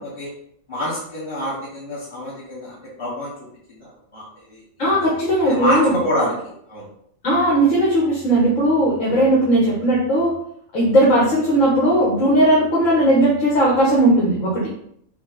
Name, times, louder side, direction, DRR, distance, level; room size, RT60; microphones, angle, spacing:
voice 1, 0.7-3.3 3.7-5.1 5.5-6.4 6.7-6.8, equal, 25° left, -9 dB, 0.9 m, -27 dB
voice 2, 4.8-5.9 7.2-10.3 10.7-14.7, right 1 dB, 70° left, -5 dB, 1.5 m, -17 dB
6.0 x 2.1 x 3.9 m, 0.70 s
omnidirectional pair, 1.4 m